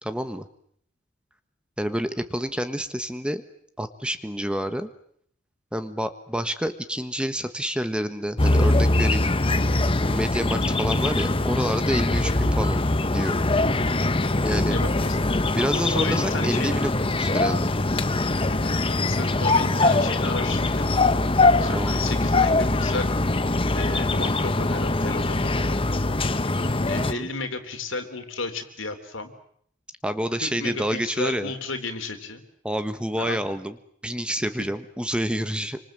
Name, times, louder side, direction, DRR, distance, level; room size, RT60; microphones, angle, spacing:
voice 1, 0.0-0.4 1.8-3.4 3.8-4.9 5.7-9.2 10.0-12.8 13.1-13.4 14.4-14.8 15.5-17.7 21.7-22.0 27.0-27.3 30.0-31.5 32.6-33.7 34.0-35.8, equal, 5° right, 9 dB, 1.3 m, -28 dB
sound 1, 8.4-27.1, left 2 dB, 30° left, 1.0 m, -22 dB
voice 2, 14.4-15.4 15.9-16.8 17.9-18.1 18.5-23.1 23.7-26.3 26.8-29.3 30.4-32.4 33.2-33.4 34.6-34.7, left 3 dB, 80° left, 6 dB, 3.6 m, -34 dB
27.5 x 25.5 x 7.6 m, 0.67 s
head